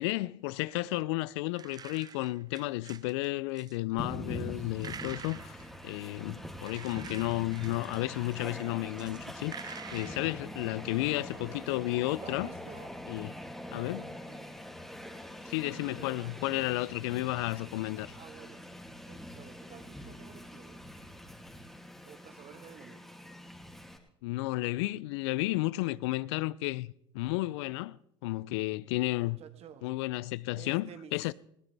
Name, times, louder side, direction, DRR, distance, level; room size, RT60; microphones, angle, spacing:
voice 1, 0.0-12.5 13.1-13.3 13.7-14.1 15.4-18.1 24.2-28.0 28.2-29.4 29.8-31.3, left 19 dB, 70° left, 0.5 m, -33 dB
sound 1, 1.5-3.3 3.5-3.8 4.8-6.1 6.6-8.5 8.9-10.3, right 7 dB, 25° right, 0.7 m, -47 dB
Train, 4.0-24.0, equal, ahead, 2.5 m, -44 dB
voice 2, 11.3-11.7 12.2-12.9 14.3-14.5 15.6-16.8 18.2-18.6 19.1-20.8 22.0-23.1 29.2-29.9 30.5-31.3, right 8 dB, 45° right, 1.7 m, -52 dB
21.0 x 16.5 x 3.4 m
hypercardioid pair, 80°, 15 cm